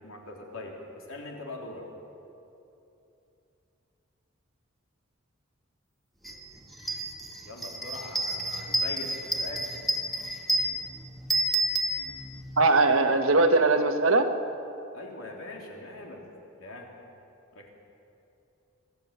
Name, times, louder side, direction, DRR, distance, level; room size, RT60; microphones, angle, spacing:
voice 1, 0.0-1.8 7.5-9.7 14.9-16.2 16.6-16.9 17.5-17.7, left 2 dB, 85° left, 0 dB, 3.6 m, -42 dB
sound 1, 6.3-6.4 6.7-12.6, right 1 dB, ahead, 1.9 m, -30 dB
voice 2, 12.6-14.3, right 3 dB, 85° right, 6 dB, 1.5 m, -21 dB
23.0 x 13.0 x 8.8 m, 2.9 s
head